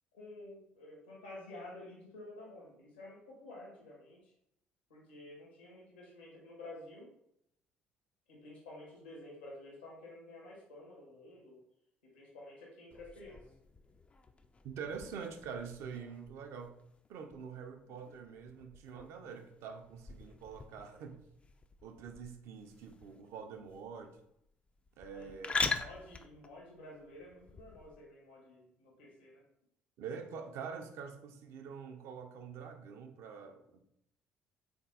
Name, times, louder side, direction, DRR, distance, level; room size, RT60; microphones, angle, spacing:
voice 1, 0.1-4.3 4.9-7.1 8.3-11.6 12.0-13.4 25.1-25.4 25.8-29.4, left 2 dB, 80° left, -3 dB, 1.4 m, -51 dB
sound 1, 12.9-28.0, left 3 dB, 20° left, 0.4 m, -44 dB
voice 2, 14.6-16.7 17.1-21.2 21.8-24.2 25.0-25.6 30.0-33.8, right 6 dB, 55° right, 5 dB, 0.6 m, -45 dB
3.9 x 3.4 x 3.9 m, 0.78 s
figure-of-eight pair, 50°, 5 cm